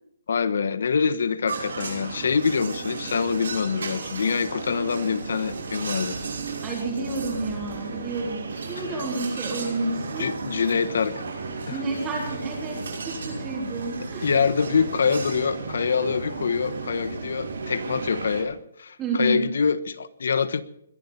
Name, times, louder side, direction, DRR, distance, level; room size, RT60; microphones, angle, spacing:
voice 1, 0.3-6.2 10.2-11.1 11.7-11.8 14.0-20.6, left 5 dB, 65° left, 14 dB, 1.2 m, -25 dB
sound 1, 1.5-18.4, right 4 dB, 75° right, 6.3 m, -34 dB
voice 2, 6.6-10.3 11.7-12.8 13.1-14.3 19.0-19.5, right 2 dB, 15° right, -2 dB, 3.4 m, -30 dB
21.5 x 11.0 x 5.6 m, 0.74 s
hypercardioid pair, 175°, 0 cm